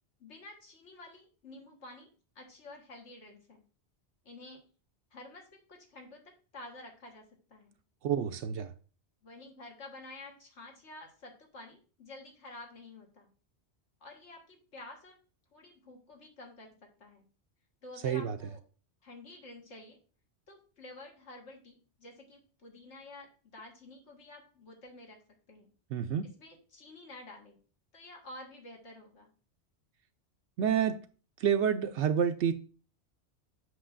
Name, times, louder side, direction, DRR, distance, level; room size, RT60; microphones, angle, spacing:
voice 1, 0.2-2.1 2.4-3.6 4.3-4.6 5.1-7.8 9.2-13.3 14.0-15.2 15.5-17.3 17.8-18.6 19.0-20.0 20.5-25.2 25.5-25.7 26.4-27.6 27.9-29.3, left 2 dB, 80° left, 1.8 m, -50 dB
voice 2, 8.0-8.7 18.0-18.4 25.9-26.3 30.6-31.0 31.4-32.5, right 8 dB, 85° right, 0.9 m, -28 dB
7.8 x 6.1 x 2.5 m
omnidirectional pair, 1.2 m